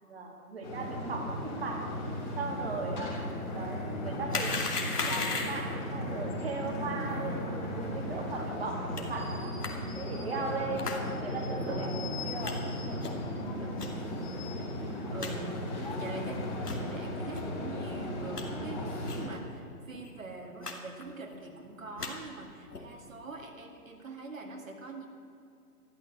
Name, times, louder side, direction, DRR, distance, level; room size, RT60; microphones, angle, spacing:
voice 1, 0.0-1.8 2.4-3.1 3.5-4.6 5.0-7.5 7.7-9.5 10.0-10.9 11.2-12.6, right 3 dB, 40° right, 0 dB, 2.0 m, -37 dB
sound 1, 0.6-19.3, left 1 dB, 30° left, 3.6 m, -36 dB
sound 2, 4.3-5.7 9.0-9.1 9.6-9.7 10.8-11.0 11.6-11.7 12.4-12.5 13.0-13.3 13.8-13.9 14.5-14.6 14.8-14.9 15.2-15.3 15.9-16.0 16.6-16.8 17.3-17.5 17.9-18.4 19.1-19.3 19.5-19.6 19.9-20.1 20.6-20.7 21.0-21.4 21.8-22.1 22.7-23.0, left 4 dB, 75° left, 2.6 m, -36 dB
voice 2, 8.3-8.7 10.5-10.8 11.7-12.0 13.3-14.4 15.1-15.7 16.0-25.1, right 3 dB, 55° right, 2 dB, 2.1 m, -44 dB
13.0 x 12.5 x 7.5 m, 2.5 s
hypercardioid pair, 180°, 47 cm